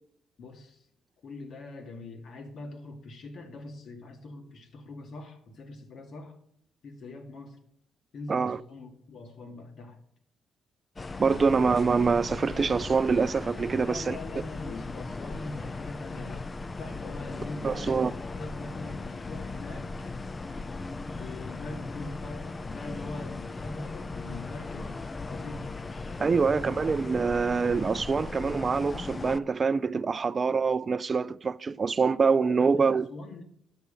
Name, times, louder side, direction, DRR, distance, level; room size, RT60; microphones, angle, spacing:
voice 1, 0.4-0.9 1.2-6.4 6.8-7.6 8.1-10.0 13.8-16.5 16.8-19.9 21.1-25.0 25.3-25.7 26.3-27.0 32.6-33.4, left 2 dB, 65° left, 2.1 m, -42 dB
sound 1, 11.0-29.4, left 3 dB, 30° left, 0.5 m, -37 dB
voice 2, 11.2-14.2 17.6-18.1 26.2-33.1, right 5 dB, 40° right, 0.4 m, -25 dB
9.9 x 6.7 x 5.1 m
supercardioid pair, 60°, 0 cm